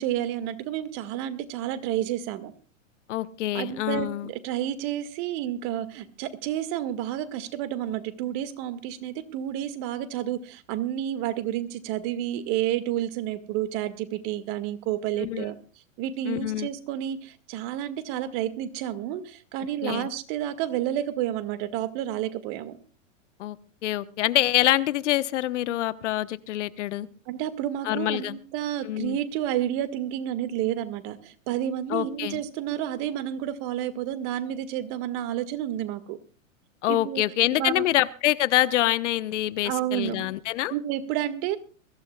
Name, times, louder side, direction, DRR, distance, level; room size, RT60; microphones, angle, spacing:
voice 1, 0.0-2.5 3.5-15.6 16.0-22.8 27.3-36.2 36.9-37.2 37.6-37.9 39.6-40.2 40.7-41.6, right 11 dB, 45° right, 11 dB, 1.9 m, -30 dB
voice 2, 3.1-4.3 15.2-15.5 16.3-16.7 19.8-20.1 23.4-23.6 23.8-27.1 27.8-28.4 28.8-29.2 31.9-32.4 36.8-40.7, left 14 dB, 65° left, 14 dB, 1.1 m, -25 dB
22.5 x 15.5 x 2.3 m, 0.36 s
hypercardioid pair, 110°, 39 cm